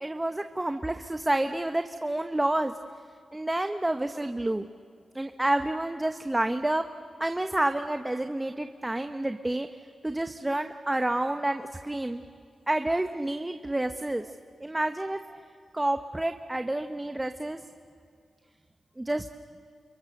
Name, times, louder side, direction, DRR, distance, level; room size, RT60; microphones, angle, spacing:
voice 1, 0.0-2.7 3.3-4.7 5.1-6.8 7.2-9.7 10.0-12.2 12.7-14.3 14.6-15.2 15.7-17.6 19.0-19.2, right 1 dB, 20° right, 7 dB, 1.1 m, -29 dB
30.0 x 29.0 x 6.7 m, 2.2 s
supercardioid pair, 40°, 0 cm